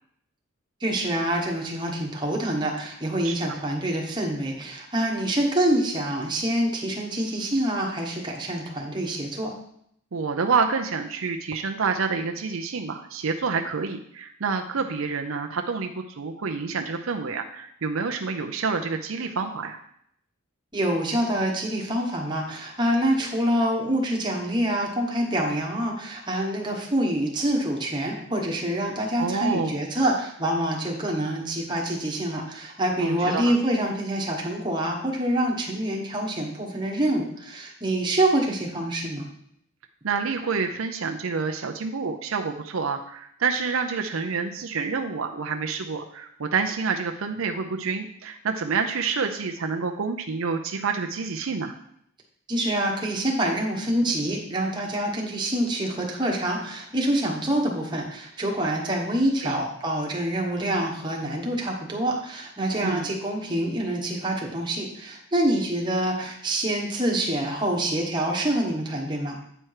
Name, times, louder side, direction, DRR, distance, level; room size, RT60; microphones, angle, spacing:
voice 1, 0.8-9.5 20.7-39.3 52.5-69.3, right 1 dB, 20° right, -1 dB, 1.2 m, -26 dB
voice 2, 10.1-19.8 29.2-29.8 33.0-33.6 40.0-51.7 59.4-59.6 62.8-63.1, right 5 dB, 75° right, 4 dB, 0.6 m, -28 dB
8.8 x 4.5 x 4.8 m, 0.70 s
head